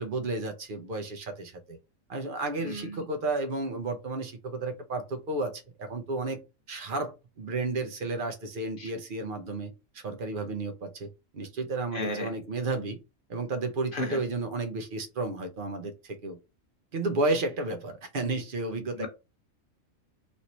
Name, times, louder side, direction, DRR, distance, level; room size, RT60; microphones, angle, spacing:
voice 1, 0.0-1.8 2.1-6.4 6.7-13.0 13.3-16.4 16.9-19.1, right 2 dB, 50° right, 0.7 m, -32 dB
voice 2, 11.9-12.3 13.9-14.2 18.9-19.1, left 1 dB, 50° left, 0.7 m, -33 dB
3.2 x 2.7 x 2.8 m
omnidirectional pair, 1.5 m